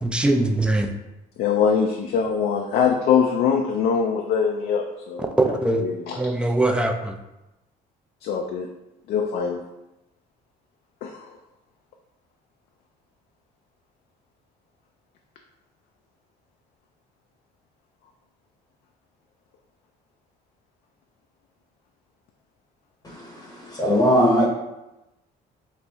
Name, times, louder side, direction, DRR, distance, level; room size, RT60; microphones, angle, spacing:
voice 1, 0.0-0.9 5.2-5.8 6.1-7.2, right 2 dB, 5° right, 4 dB, 0.4 m, -22 dB
voice 2, 1.4-5.3 5.8-6.2 8.2-8.7 9.1-9.6 11.0-11.3, left 6 dB, 65° left, 2 dB, 0.4 m, -23 dB
voice 3, 23.0-24.4, equal, 20° left, -3 dB, 0.8 m, -20 dB
4.3 x 2.5 x 3.4 m, 0.96 s
cardioid pair, 110°, 17 cm